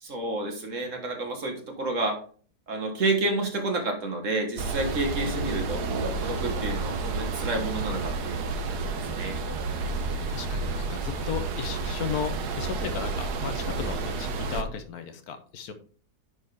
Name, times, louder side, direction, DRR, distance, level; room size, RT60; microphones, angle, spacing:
voice 1, 0.0-2.2 2.7-9.4, right 2 dB, 50° right, 3 dB, 1.7 m, -30 dB
sound 1, 4.6-14.6, right 3 dB, 75° right, 1.4 m, -30 dB
voice 2, 10.0-15.7, left 7 dB, 70° left, 8 dB, 1.2 m, -35 dB
9.9 x 4.6 x 3.4 m, 0.44 s
omnidirectional pair, 1.8 m